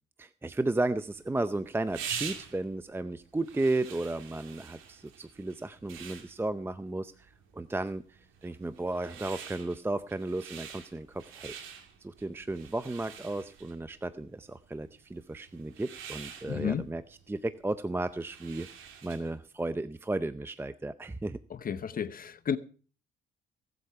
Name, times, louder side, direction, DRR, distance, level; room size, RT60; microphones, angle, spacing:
voice 1, 0.2-11.6 12.0-18.7 19.0-21.4, right 2 dB, 10° right, 0.6 m, -34 dB
sound 1, 0.9-19.4, right 7 dB, 85° right, 2.7 m, -46 dB
voice 2, 16.5-16.8 21.6-22.6, left 7 dB, 45° left, 0.9 m, -31 dB
18.0 x 8.1 x 5.8 m
cardioid pair, 90°, 20 cm